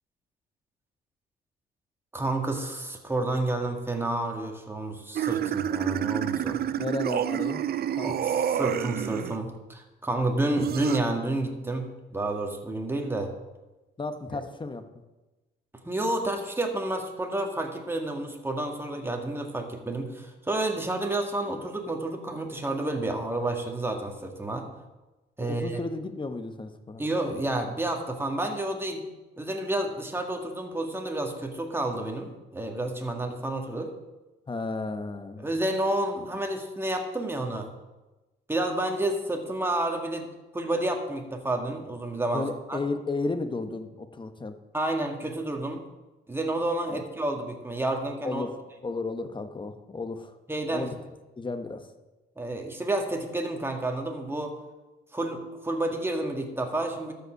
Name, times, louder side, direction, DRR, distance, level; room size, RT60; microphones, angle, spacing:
voice 1, 2.1-6.7 8.0-13.3 14.3-14.4 15.9-24.7 25.4-25.7 27.0-29.0 29.4-33.9 35.4-37.7 38.5-40.3 40.5-42.8 44.7-45.8 46.3-48.4 50.5-50.9 52.4-54.5 55.1-57.1, right 2 dB, 10° right, 2 dB, 1.8 m, -30 dB
sound 1, 5.2-9.4 10.6-11.0, right 10 dB, 50° right, 0.5 m, -28 dB
voice 2, 6.7-7.6 8.0-8.1 14.0-14.8 25.4-27.0 34.5-35.5 42.3-44.5 46.9-47.0 48.2-48.5 48.8-50.3 50.7-50.9 51.4-51.9, left 3 dB, 25° left, 8 dB, 1.1 m, -33 dB
13.0 x 5.5 x 6.4 m, 1.1 s
cardioid pair, 90°, 20 cm